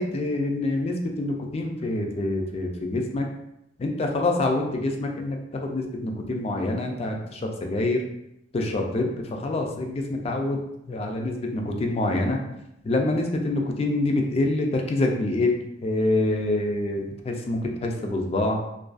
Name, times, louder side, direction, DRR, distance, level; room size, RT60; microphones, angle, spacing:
voice 1, 0.0-3.2 3.8-8.0 8.5-12.4 12.8-18.6, left 2 dB, 35° left, 2 dB, 0.3 m, -26 dB
2.4 x 2.2 x 2.3 m, 0.83 s
head